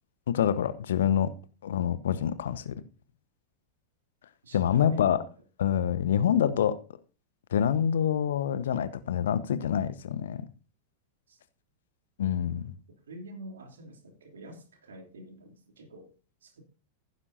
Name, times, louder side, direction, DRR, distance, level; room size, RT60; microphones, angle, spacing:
voice 1, 0.3-1.3 1.6-2.7 4.5-5.2 5.6-6.8 7.5-10.4 12.2-12.7, left 9 dB, 60° left, 0.9 m, -26 dB
voice 2, 4.4-5.3 11.3-11.4 13.1-16.1 16.4-16.6, right 1 dB, 65° right, 3.0 m, -47 dB
16.0 x 9.9 x 2.7 m
figure-of-eight pair, 90°, 0 cm